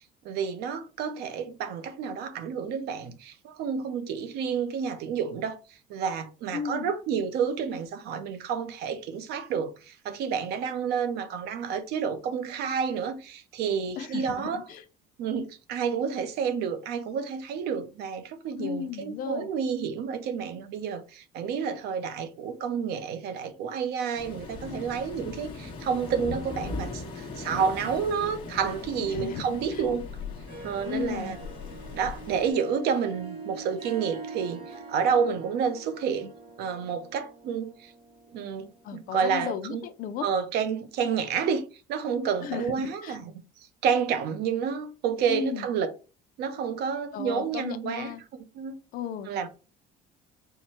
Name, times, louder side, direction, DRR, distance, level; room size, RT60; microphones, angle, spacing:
voice 1, 0.2-14.6 15.2-30.0 30.6-31.4 31.9-36.3 36.6-37.9 38.3-39.8 40.2-41.6 41.9-43.3 43.6-45.9 46.4-48.1 48.5-48.8 49.3-49.5, right 6 dB, 65° right, 0.6 m, -30 dB
voice 2, 6.5-6.9 14.0-14.8 18.6-19.5 29.0-29.9 30.8-31.4 38.8-40.3 42.4-43.2 45.3-45.7 47.1-48.2 48.9-49.3, left 8 dB, 50° left, 0.5 m, -35 dB
Waves surf, 24.2-32.5, left 3 dB, 30° left, 1.0 m, -39 dB
Harp, 30.3-38.9, right 3 dB, 30° right, 0.8 m, -44 dB
4.6 x 2.2 x 4.2 m
cardioid pair, 165°, 18 cm